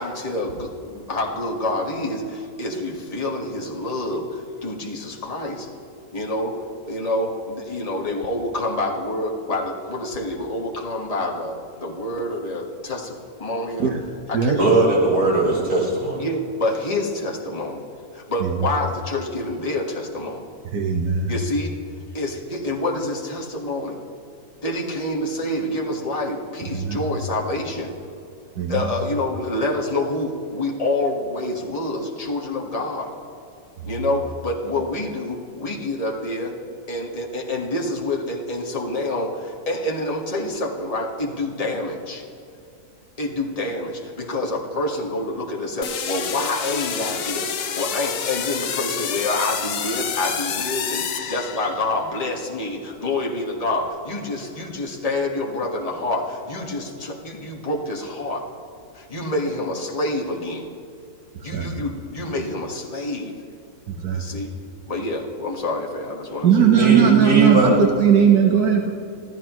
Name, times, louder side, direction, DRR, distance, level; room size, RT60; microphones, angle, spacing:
voice 1, 0.0-5.7 6.1-6.5 6.8-13.9 14.3-14.6 16.2-17.8 18.1-20.5 21.3-21.7 22.1-24.0 24.6-27.9 28.7-33.1 33.9-36.5 36.9-42.2 43.2-58.4 58.9-60.7 61.4-63.3 64.1-64.5 64.9-66.7, left 2 dB, 25° left, -1 dB, 1.7 m, -27 dB
voice 2, 14.6-16.2 66.7-67.8, right 2 dB, 70° right, -6 dB, 4.6 m, -19 dB
voice 3, 20.7-21.3 26.7-27.0 28.6-28.8 61.5-61.7 64.0-64.2 66.4-67.7 68.0-68.9, right 8 dB, 85° right, 2 dB, 1.6 m, -17 dB
sound 1, 45.8-52.0, left 7 dB, 85° left, 1.4 m, -28 dB
26.0 x 14.0 x 3.1 m, 2.6 s
omnidirectional pair, 1.6 m